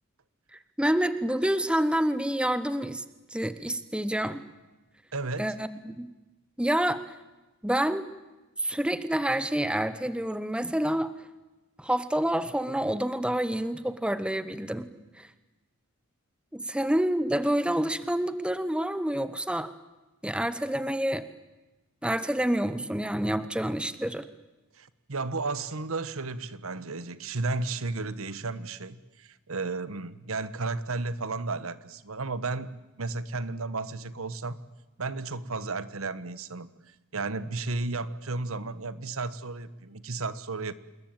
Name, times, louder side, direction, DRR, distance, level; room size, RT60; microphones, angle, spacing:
voice 1, 0.8-3.0 3.3-4.4 5.4-6.1 6.6-7.0 7.6-8.0 8.6-11.1 11.8-14.9 15.2-15.3 16.5-19.7 20.2-21.2 22.0-24.2, right 1 dB, 5° right, 13 dB, 1.0 m, -28 dB
voice 2, 5.1-5.5 24.7-32.7 33.0-34.6 35.0-40.7, right 3 dB, 70° right, 15 dB, 1.3 m, -33 dB
27.5 x 21.0 x 9.0 m, 1.1 s
head